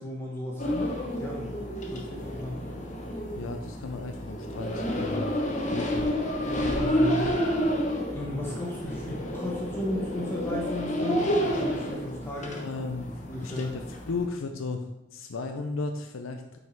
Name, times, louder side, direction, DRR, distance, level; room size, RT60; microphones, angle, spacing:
voice 1, 0.0-1.6 1.9-2.7 6.6-7.4 8.1-12.6 13.3-13.7, left 1 dB, 10° left, -3 dB, 1.0 m, -35 dB
sound 1, 0.6-14.3, equal, 35° left, 1.0 m, -30 dB
voice 2, 3.4-5.3 5.7-6.1 12.6-13.1 13.4-16.6, left 3 dB, 85° left, 5 dB, 0.6 m, -35 dB
5.9 x 5.5 x 4.5 m, 0.93 s
head